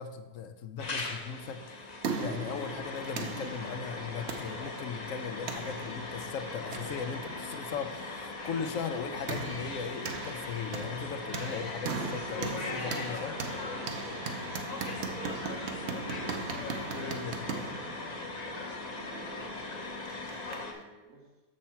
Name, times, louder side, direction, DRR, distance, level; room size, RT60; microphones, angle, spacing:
voice 1, 0.0-13.4 16.9-17.4, left 6 dB, 70° left, 8 dB, 0.9 m, -38 dB
sound 1, 0.8-20.7, left 3 dB, 35° left, 0.9 m, -39 dB
sound 2, 1.6-20.8, right 4 dB, 55° right, 0.9 m, -40 dB
voice 2, 18.4-21.4, right 2 dB, 90° right, -2 dB, 2.2 m, -55 dB
6.9 x 6.4 x 4.3 m, 1.2 s
omnidirectional pair, 1.5 m